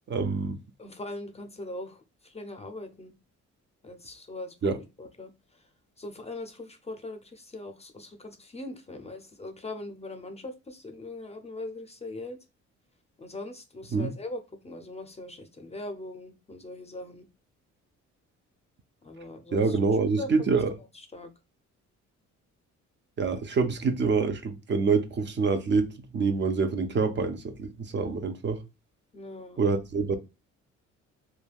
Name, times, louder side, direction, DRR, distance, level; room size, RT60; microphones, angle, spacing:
voice 1, 0.1-0.6 4.6-4.8 13.9-14.1 19.5-20.7 23.2-28.6 29.6-30.2, right 4 dB, 40° right, 0.5 m, -26 dB
voice 2, 0.8-3.1 3.8-5.3 6.0-12.4 13.2-17.3 19.0-19.8 20.2-20.3 21.1-21.3 29.1-29.7, left 2 dB, 20° left, 0.5 m, -41 dB
3.3 x 2.2 x 2.3 m
cardioid pair, 90°, 30 cm